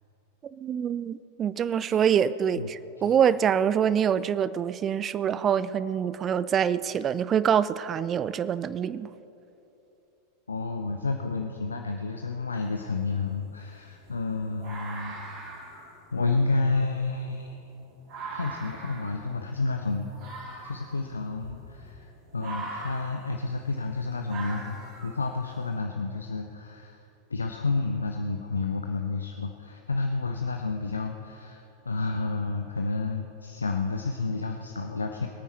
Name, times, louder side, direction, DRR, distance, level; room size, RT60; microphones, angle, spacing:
voice 1, 0.6-9.1, right 8 dB, 25° right, 17 dB, 0.3 m, -25 dB
voice 2, 1.6-2.0 2.6-2.7 3.0-3.1 10.5-15.2 16.1-17.6 18.3-20.3 20.6-27.0 27.3-35.3, left 3 dB, 75° left, 4 dB, 0.6 m, -30 dB
sound 1, 12.5-12.7 13.1-25.6, right 2 dB, 40° right, 3.7 m, -42 dB
21.5 x 9.2 x 4.6 m, 3.0 s
figure-of-eight pair, 90°, 0 cm